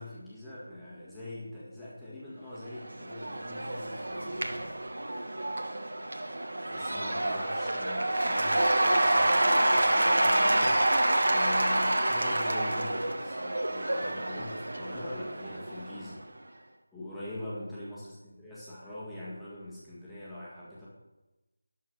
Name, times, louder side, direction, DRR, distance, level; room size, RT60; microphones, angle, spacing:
voice 1, 0.0-4.7 6.7-16.2 16.9-20.9, left 1 dB, ahead, -12 dB, 1.8 m, -42 dB
Cheering / Applause / Crowd, 2.7-16.1, right 1 dB, 75° right, 1.3 m, -28 dB
11.5 x 4.7 x 6.2 m, 1.1 s
figure-of-eight pair, 170°, 0 cm